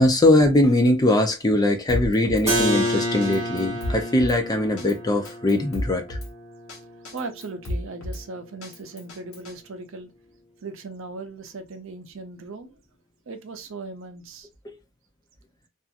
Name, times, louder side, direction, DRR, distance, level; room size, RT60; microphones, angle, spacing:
voice 1, 0.0-6.2 14.6-14.7, left 1 dB, 20° left, 0.5 m, -21 dB
Drum kit, 1.9-2.5 2.8-2.9 3.2-4.4 4.8-4.9 5.2-6.3 6.7-6.8 7.0-8.2 8.6-9.5, left 1 dB, 80° left, 0.9 m, -31 dB
Keyboard (musical), 2.5-8.1, equal, 15° right, 1.4 m, -30 dB
voice 2, 7.1-10.1 10.6-12.8 13.3-14.5, right 3 dB, 65° right, 0.6 m, -38 dB
2.7 x 2.5 x 2.4 m
head